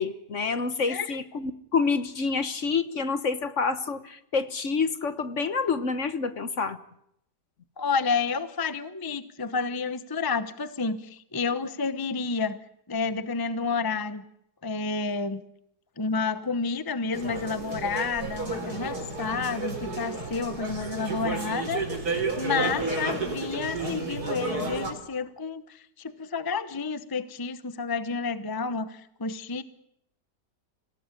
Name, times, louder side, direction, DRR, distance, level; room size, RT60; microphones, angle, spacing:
voice 1, 0.0-6.8, left 4 dB, 45° left, 12 dB, 1.4 m, -28 dB
voice 2, 0.9-1.2 7.8-12.6 12.9-14.2 14.6-15.4 16.0-21.8 22.2-29.6, left 4 dB, 15° left, 13 dB, 0.9 m, -30 dB
sound 1, 17.1-24.9, right 3 dB, 60° right, 4.8 m, -32 dB
26.5 x 17.5 x 9.9 m, 0.76 s
omnidirectional pair, 1.9 m